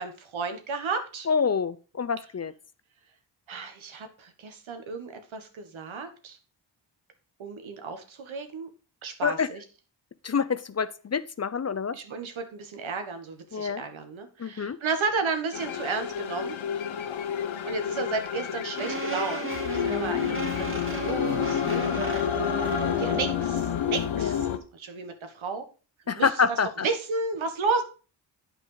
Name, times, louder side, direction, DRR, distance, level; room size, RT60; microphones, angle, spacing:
voice 1, 0.0-1.3 3.5-6.4 7.4-8.7 9.0-9.6 11.9-16.6 17.6-20.5 20.9-21.9 22.8-25.7 26.1-27.8, right 4 dB, 80° right, 7 dB, 1.7 m, -33 dB
voice 2, 1.3-2.5 9.2-9.5 10.2-11.9 13.5-13.8 14.4-14.8 24.2-24.4 26.1-26.9, left 6 dB, 35° left, 15 dB, 0.6 m, -27 dB
sound 1, 15.5-24.6, left 9 dB, 80° left, 1.0 m, -29 dB
sound 2, 18.8-23.3, right 3 dB, 25° right, 1.9 m, -34 dB
9.1 x 5.0 x 5.0 m, 0.35 s
cardioid pair, 65°, 47 cm